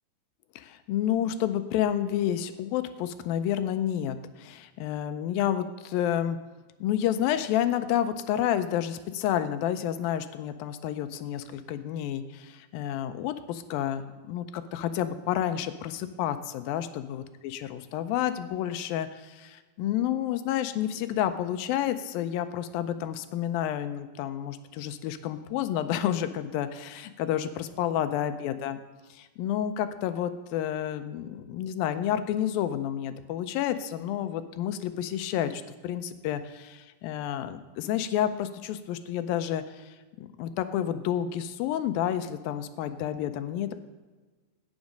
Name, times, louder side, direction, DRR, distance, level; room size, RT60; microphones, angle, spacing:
voice 1, 0.6-6.4 6.8-28.8 29.1-43.8, left 10 dB, 85° left, 10 dB, 2.4 m, -30 dB
17.0 x 6.3 x 5.2 m, 1.3 s
omnidirectional pair, 4.2 m